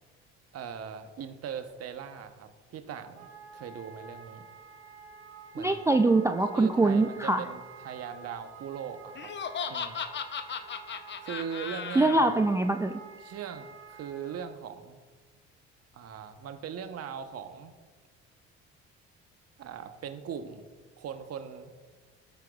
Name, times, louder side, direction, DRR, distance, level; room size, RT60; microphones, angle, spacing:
voice 1, 0.5-4.4 5.5-5.8 6.5-9.3 9.7-10.0 11.2-12.3 13.2-15.0 15.9-17.7 19.6-20.7 21.0-21.7, right 7 dB, 50° right, 9 dB, 0.9 m, -40 dB
Wind instrument woodwind instrument, 3.1-14.5, right 5 dB, 90° right, 1.1 m, -50 dB
voice 2, 5.6-7.4 12.0-13.0, right 2 dB, 10° right, 8 dB, 0.3 m, -23 dB
Laughter, 9.2-12.2, left 7 dB, 35° left, 0.7 m, -36 dB
14.0 x 5.8 x 2.4 m, 1.4 s
hypercardioid pair, 60°, 33 cm